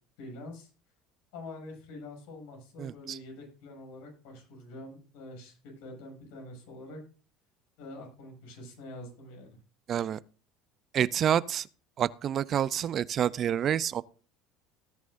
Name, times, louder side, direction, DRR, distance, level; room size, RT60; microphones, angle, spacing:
voice 1, 0.2-0.7 1.3-7.0 7.8-9.6, left 1 dB, 75° left, 7.3 m, -45 dB
voice 2, 2.8-3.2 9.9-10.2 10.9-11.7 12.0-14.0, right 9 dB, 45° right, 0.5 m, -28 dB
17.5 x 10.5 x 2.6 m
supercardioid pair, 85°, 0 cm